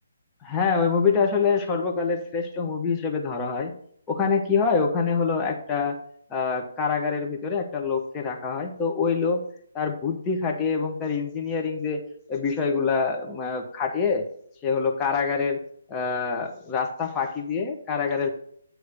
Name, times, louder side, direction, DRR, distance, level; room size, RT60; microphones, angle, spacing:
voice 1, 0.4-3.7 4.1-6.0 6.3-9.4 9.7-12.0 12.3-14.3 14.6-15.6 15.9-18.3, left 5 dB, 15° left, 0 dB, 0.9 m, -25 dB
9.5 x 3.2 x 6.6 m, 0.62 s
figure-of-eight pair, 140°, 0 cm